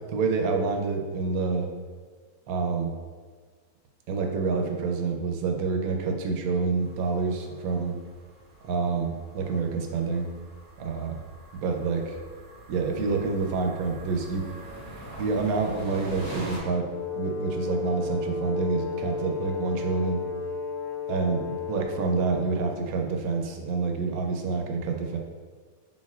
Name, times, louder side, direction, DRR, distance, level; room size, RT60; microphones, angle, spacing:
voice 1, 0.1-1.7 2.5-2.9 4.1-8.0 8.6-10.3 10.8-11.2 11.6-12.1 12.7-14.5 15.2-16.9 17.1-20.2 21.1-25.2, right 4 dB, 75° right, 2 dB, 1.0 m, -27 dB
sound 1, 6.8-16.6, right 1 dB, 45° right, 0.8 m, -43 dB
Brass instrument, 16.8-22.8, left 4 dB, 75° left, 1.1 m, -33 dB
4.3 x 3.8 x 2.3 m, 1.6 s
omnidirectional pair, 1.5 m